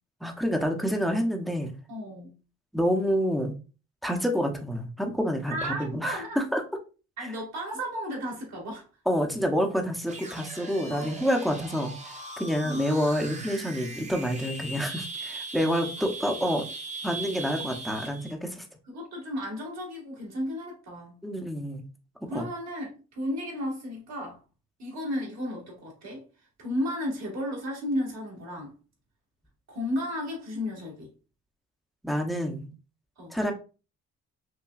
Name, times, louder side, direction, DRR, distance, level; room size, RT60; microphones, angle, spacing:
voice 1, 0.2-1.7 2.7-3.5 4.0-6.6 9.1-11.9 12.4-16.7 17.0-18.6 21.2-21.8 22.3-22.4 32.0-32.7 33.3-33.5, equal, ahead, 0.7 m, -28 dB
voice 2, 1.9-2.4 5.5-6.4 7.2-8.8 10.9-11.3 12.6-13.0 13.8-14.1 16.3-16.5 18.9-21.2 22.3-24.4 24.8-26.2 26.6-28.7 29.7-31.1 33.2-33.4, equal, 60° right, 1.9 m, -34 dB
sound 1, 10.0-18.3, right 3 dB, 25° right, 0.9 m, -39 dB
5.7 x 2.2 x 2.3 m
cardioid pair, 90°, 30 cm